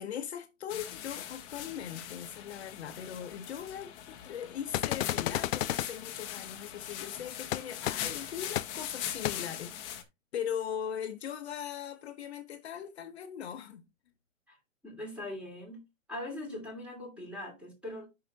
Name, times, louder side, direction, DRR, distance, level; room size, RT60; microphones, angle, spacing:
voice 1, 0.0-10.0 10.3-13.9, left 9 dB, 55° left, 1.0 m, -40 dB
sound 1, 0.7-10.0, left 10 dB, 25° left, 1.1 m, -41 dB
sound 2, 4.7-5.9 7.5-7.6 7.9-8.0 8.6-8.7 9.2-9.3, left 13 dB, 80° left, 0.5 m, -31 dB
voice 2, 14.8-15.8 16.1-18.1, left 1 dB, 5° right, 2.7 m, -41 dB
10.0 x 5.9 x 2.8 m
hypercardioid pair, 155°, 39 cm